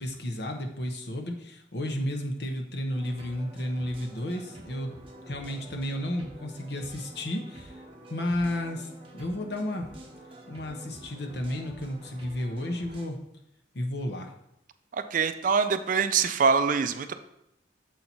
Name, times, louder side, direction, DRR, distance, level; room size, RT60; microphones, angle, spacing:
voice 1, 0.0-4.9 5.3-7.8 8.1-9.9 10.5-13.2 13.7-14.3, left 1 dB, 60° left, 3 dB, 0.9 m, -32 dB
sound 1, 2.9-13.1, right 1 dB, 30° right, 1.0 m, -48 dB
voice 2, 14.9-17.1, right 5 dB, 45° right, 10 dB, 0.4 m, -24 dB
7.6 x 4.1 x 4.4 m, 0.81 s
head